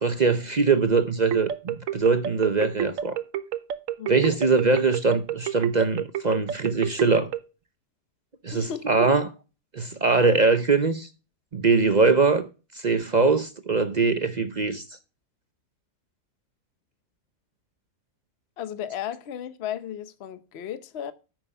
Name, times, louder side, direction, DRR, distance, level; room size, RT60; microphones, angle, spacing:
voice 1, 0.0-3.2 4.1-7.3 8.4-9.3 9.7-11.1 11.5-12.5 12.7-14.8, right 4 dB, 50° right, 0.5 m, -22 dB
sound 1, 1.3-7.4, right 10 dB, 65° right, 1.0 m, -29 dB
voice 2, 4.0-4.4 8.5-8.9 18.6-21.1, left 9 dB, 50° left, 0.9 m, -35 dB
9.7 x 6.2 x 5.4 m
omnidirectional pair, 1.7 m